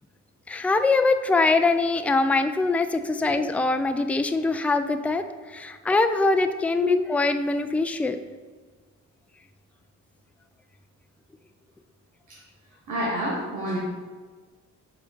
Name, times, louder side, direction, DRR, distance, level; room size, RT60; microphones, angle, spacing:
voice 1, 0.5-5.2 5.5-8.2, left 3 dB, 5° left, 8 dB, 0.3 m, -23 dB
voice 2, 12.9-13.8, right 1 dB, 85° right, -5 dB, 1.4 m, -28 dB
5.8 x 4.8 x 4.5 m, 1.4 s
cardioid pair, 90°, 30 cm